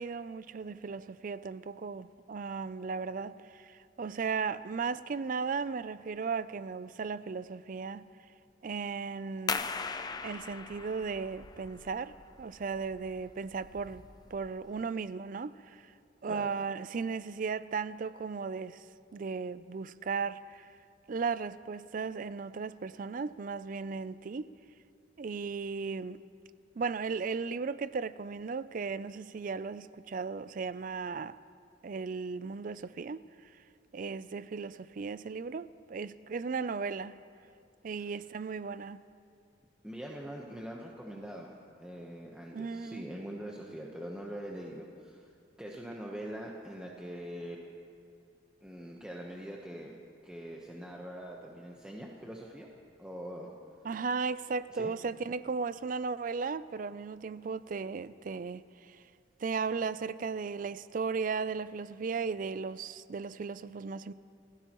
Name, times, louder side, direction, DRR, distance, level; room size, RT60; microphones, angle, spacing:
voice 1, 0.0-8.1 8.6-9.7 10.2-14.0 14.3-15.9 16.2-18.8 19.1-20.7 21.1-24.5 25.2-26.2 26.8-31.4 31.8-33.2 33.9-37.2 37.8-39.0 42.5-43.1 53.8-59.0 59.4-64.1, right 5 dB, 45° right, 0.4 m, -36 dB
sound 1, 9.5-14.8, left 5 dB, 20° left, 0.5 m, -40 dB
voice 2, 39.8-45.3 45.6-47.8 48.6-49.9 50.2-52.7 53.0-53.5 54.7-54.9, equal, 5° right, 1.0 m, -43 dB
29.0 x 15.5 x 3.0 m
head